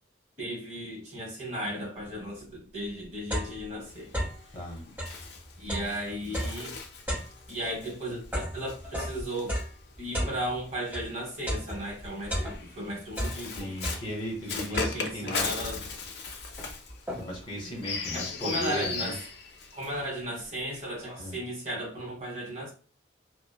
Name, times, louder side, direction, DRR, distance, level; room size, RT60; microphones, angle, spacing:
voice 1, 0.4-4.1 5.6-6.8 7.5-9.6 10.0-13.7 14.5-15.8 17.1-17.3 17.6-19.2 19.7-22.7, equal, 40° right, 1.0 m, -35 dB
sound 1, 2.4-2.5 2.9-4.5 4.9-11.1 11.5-12.8 13.1-14.4 14.7-15.3 15.9-16.0 16.3-17.5, equal, 10° right, 1.4 m, -35 dB
Bird, 3.8-10.4 11.3-20.1, left 4 dB, 60° left, 0.4 m, -38 dB
voice 2, 4.5-4.8 13.4-15.6 17.2-19.1 21.2-21.4, equal, 25° left, 0.7 m, -36 dB
2.9 x 2.1 x 2.2 m
head